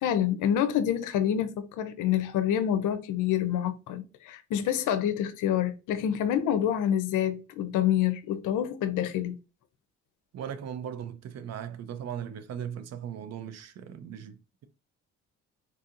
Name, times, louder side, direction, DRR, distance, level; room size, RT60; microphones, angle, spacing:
voice 1, 0.0-9.3, left 10 dB, 80° left, 0.6 m, -27 dB
voice 2, 10.3-14.7, right 8 dB, 60° right, 0.5 m, -38 dB
4.0 x 2.7 x 2.5 m
cardioid pair, 90°, 30 cm